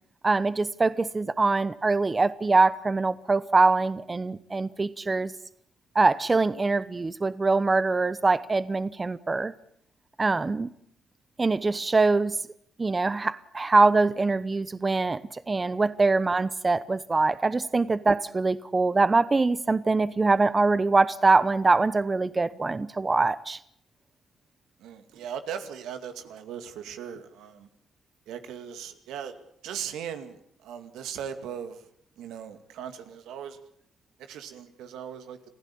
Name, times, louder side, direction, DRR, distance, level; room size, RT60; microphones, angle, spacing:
voice 1, 0.2-5.3 5.9-9.5 10.2-10.7 11.4-12.4 12.8-15.2 15.5-23.6, right 3 dB, 25° right, 0.9 m, -23 dB
voice 2, 24.8-27.7 28.3-29.4 29.6-31.8 32.2-33.6 34.2-35.4, right 8 dB, 85° right, 2.3 m, -38 dB
28.5 x 15.5 x 8.6 m
cardioid pair, 90°, 0 cm